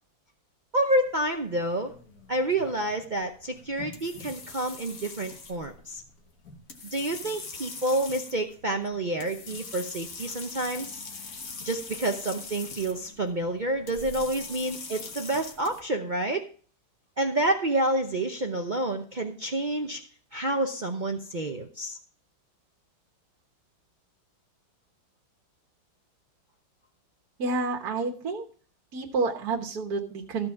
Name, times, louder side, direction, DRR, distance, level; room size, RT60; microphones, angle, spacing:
voice 1, 0.7-1.9 2.3-6.0 6.9-11.0 11.6-16.5 17.2-20.0 20.3-22.0, right 1 dB, 80° right, 4 dB, 0.4 m, -28 dB
sound 1, 1.0-15.8, left 4 dB, 45° left, 1.7 m, -43 dB
voice 2, 27.4-28.4 28.9-30.5, right 3 dB, 55° right, 1 dB, 1.8 m, -29 dB
14.5 x 5.1 x 7.1 m, 0.43 s
omnidirectional pair, 2.1 m